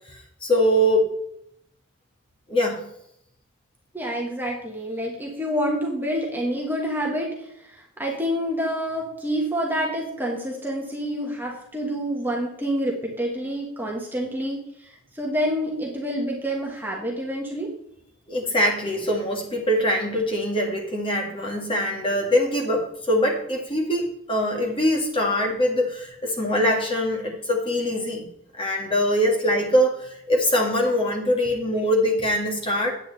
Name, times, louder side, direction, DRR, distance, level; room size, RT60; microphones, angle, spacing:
voice 1, 0.1-1.1 2.5-2.8 18.3-28.3 28.6-32.9, equal, 25° left, 1 dB, 1.9 m, -23 dB
voice 2, 3.9-7.3 8.0-14.6 15.1-17.7, equal, 10° right, -1 dB, 1.5 m, -27 dB
8.9 x 8.5 x 4.1 m, 0.73 s
head